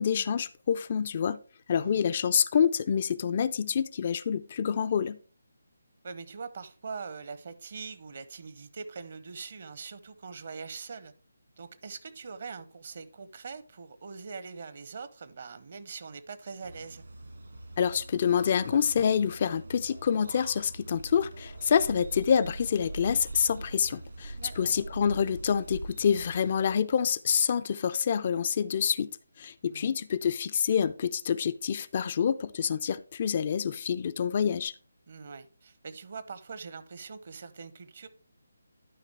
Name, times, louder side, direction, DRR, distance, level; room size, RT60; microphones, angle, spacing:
voice 1, 0.0-1.4 1.7-5.2 17.8-29.1 29.4-34.7, left 7 dB, 35° left, 0.3 m, -27 dB
voice 2, 6.0-11.1 11.6-17.0 24.4-24.7 29.7-30.0 35.1-38.1, right 5 dB, 45° right, 0.7 m, -42 dB
sound 1, 16.6-26.8, right 2 dB, 70° right, 1.6 m, -43 dB
11.0 x 5.1 x 3.4 m
figure-of-eight pair, 150°, 0 cm